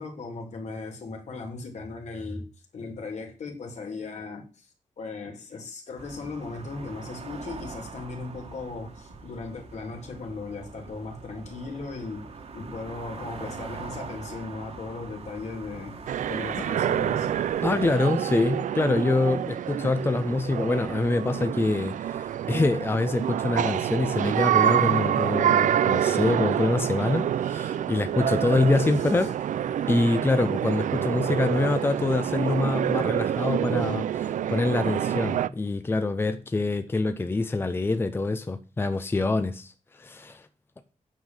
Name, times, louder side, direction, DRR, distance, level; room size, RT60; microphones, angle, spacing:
voice 1, 0.0-2.5 2.7-4.7 5.0-12.3 12.5-16.0 16.3-17.3 29.0-29.3, left 3 dB, 65° left, 2.9 m, -37 dB
sound 1, 6.0-17.9, right 4 dB, 55° right, 1.8 m, -42 dB
sound 2, 16.1-35.5, right 10 dB, 85° right, 0.5 m, -27 dB
voice 2, 17.6-29.3 29.9-40.5, left 2 dB, 20° left, 0.7 m, -25 dB
9.2 x 5.8 x 7.1 m
wide cardioid pair, 150°, 13 cm